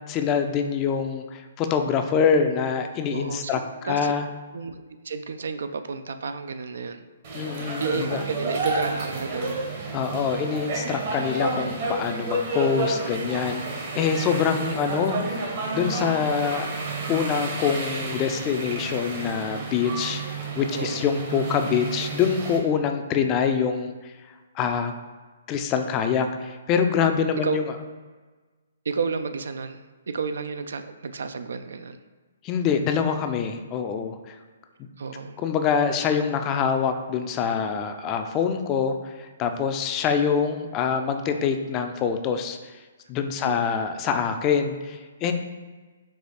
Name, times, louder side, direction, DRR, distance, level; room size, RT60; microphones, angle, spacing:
voice 1, 0.1-3.6 3.8-4.3 7.3-8.2 9.9-15.4 15.7-16.7 17.1-24.1 24.6-24.9 25.5-27.6 32.4-34.4 34.8-34.9 35.4-42.8 43.1-45.3, left 7 dB, 25° left, 6 dB, 0.4 m, -25 dB
voice 2, 3.1-4.1 4.5-7.0 7.8-9.7 14.4-14.7 20.7-21.1 27.4-27.6 28.9-32.0 35.0-35.4 43.4-43.7, right 5 dB, 70° right, 9 dB, 0.3 m, -32 dB
sound 1, 7.2-22.6, right 3 dB, 50° right, 1.0 m, -30 dB
4.7 x 2.4 x 4.2 m, 1.3 s
hypercardioid pair, 140°, 0 cm